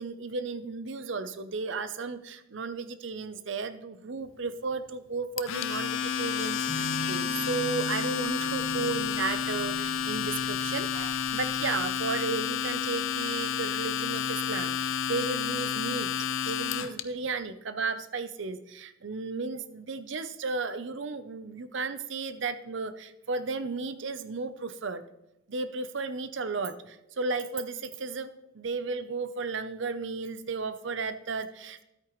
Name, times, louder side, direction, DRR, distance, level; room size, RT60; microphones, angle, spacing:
voice 1, 0.0-16.1 16.4-25.0 25.5-31.8, right 4 dB, 65° right, 12 dB, 0.6 m, -34 dB
Domestic sounds home sounds, 5.4-17.0, left 7 dB, 80° left, 0.6 m, -30 dB
sound 1, 6.7-11.9, right 3 dB, 30° left, 1.8 m, -43 dB
13.0 x 8.6 x 3.1 m, 0.87 s
head